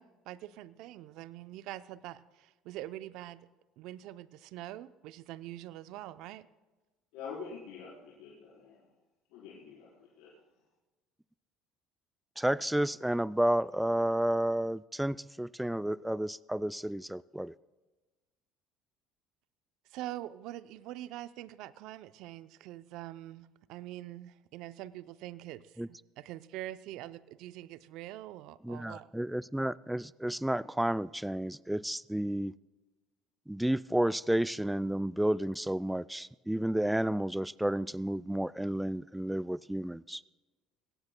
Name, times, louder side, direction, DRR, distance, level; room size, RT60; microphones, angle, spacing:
voice 1, 0.0-3.5 3.8-6.5 19.9-29.1, right 14 dB, 70° right, 14 dB, 0.5 m, -44 dB
voice 2, 7.1-8.8 9.3-10.4, left 5 dB, 75° left, -7 dB, 3.9 m, -46 dB
voice 3, 12.4-17.5 25.8-25.9 28.6-32.5 33.5-40.2, right 1 dB, 5° right, 18 dB, 0.3 m, -31 dB
22.5 x 17.5 x 2.2 m, 1.2 s
hypercardioid pair, 70°, 0 cm